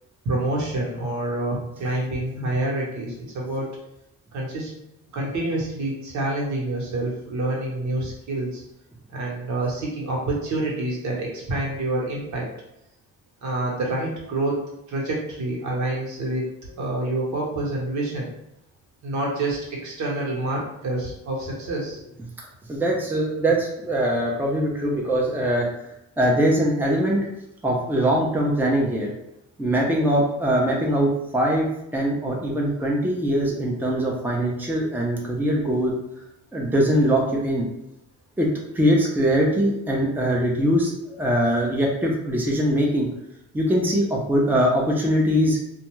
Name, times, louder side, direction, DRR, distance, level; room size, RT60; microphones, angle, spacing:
voice 1, 0.2-3.7 4.3-4.7 5.1-8.6 9.1-12.5 13.4-14.6 14.9-18.3 19.0-22.0, right 2 dB, 70° right, -3 dB, 1.0 m, -27 dB
voice 2, 22.7-25.7 26.2-27.2 27.6-29.1 29.6-31.7 31.9-35.9 36.5-37.7 38.4-38.5 38.7-43.1 43.5-45.6, equal, 5° right, -2 dB, 0.6 m, -22 dB
2.4 x 2.2 x 3.0 m, 0.84 s
cardioid pair, 90°, 30 cm